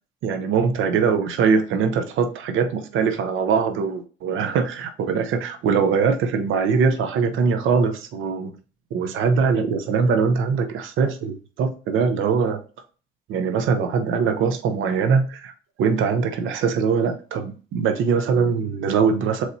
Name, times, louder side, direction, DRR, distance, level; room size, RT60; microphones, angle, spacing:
voice 1, 0.2-8.5 8.9-12.6 13.3-15.5 15.8-19.4, right 5 dB, 80° right, 0.7 m, -22 dB
4.1 x 3.2 x 4.0 m
cardioid pair, 90°, 20 cm